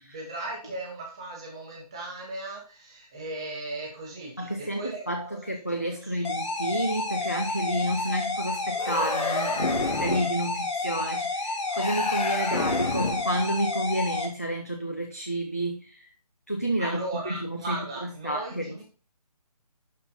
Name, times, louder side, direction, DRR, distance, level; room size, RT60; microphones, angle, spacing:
voice 1, 0.0-5.4 5.9-6.0 16.8-18.8, right 2 dB, 10° right, 0.9 m, -37 dB
voice 2, 4.4-16.1 16.5-18.8, right 1 dB, 25° left, 0.4 m, -30 dB
sound 1, 6.2-14.3, left 3 dB, 45° left, 2.5 m, -30 dB
sound 2, 8.7-10.4 11.7-13.3, left 3 dB, 80° left, 1.7 m, -29 dB
11.0 x 4.2 x 3.8 m
hypercardioid pair, 180°, 20 cm